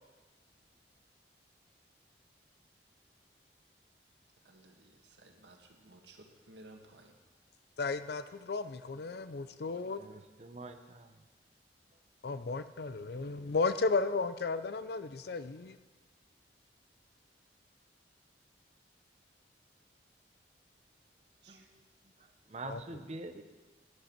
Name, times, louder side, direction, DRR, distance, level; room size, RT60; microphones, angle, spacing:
voice 1, 4.4-7.1 21.4-21.7, right 2 dB, 80° right, 3 dB, 1.5 m, -57 dB
voice 2, 7.8-10.0 12.2-15.8 22.6-22.8, left 4 dB, 60° left, 12 dB, 0.5 m, -34 dB
voice 3, 10.0-11.1 21.5-21.8 22.5-23.4, right 2 dB, 40° right, 7 dB, 0.8 m, -45 dB
12.0 x 11.5 x 4.5 m, 1.3 s
head